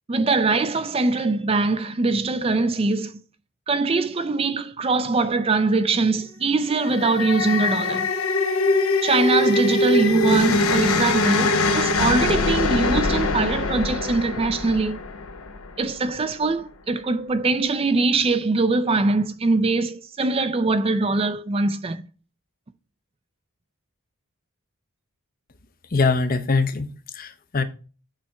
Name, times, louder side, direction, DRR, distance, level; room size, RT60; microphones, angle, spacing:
voice 1, 0.1-3.1 3.7-8.1 9.0-15.0 15.8-22.0, right 3 dB, 25° right, 0.4 m, -22 dB
sound 1, 6.7-16.0, left 2 dB, 75° left, 0.9 m, -23 dB
voice 2, 25.9-27.6, left 4 dB, 40° left, 0.6 m, -23 dB
8.8 x 3.5 x 4.3 m
head